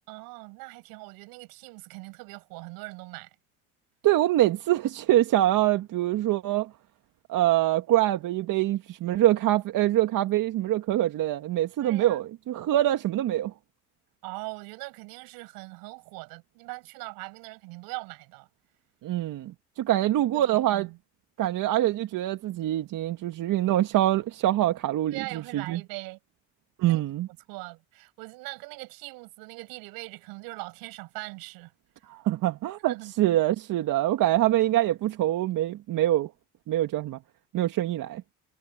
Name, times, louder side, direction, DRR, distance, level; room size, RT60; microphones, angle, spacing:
voice 1, 0.1-3.3 11.8-12.2 14.2-18.5 20.0-21.0 25.1-26.2 26.9-27.0 27.5-31.7 32.9-33.1, right 25 dB, 85° right, 7.6 m, -41 dB
voice 2, 4.0-6.7 7.3-13.5 19.0-20.9 21.4-25.8 26.8-27.3 32.1-36.3 36.7-37.2 37.5-38.2, right 14 dB, 65° right, 2.0 m, -24 dB
supercardioid pair, 90°, 35 cm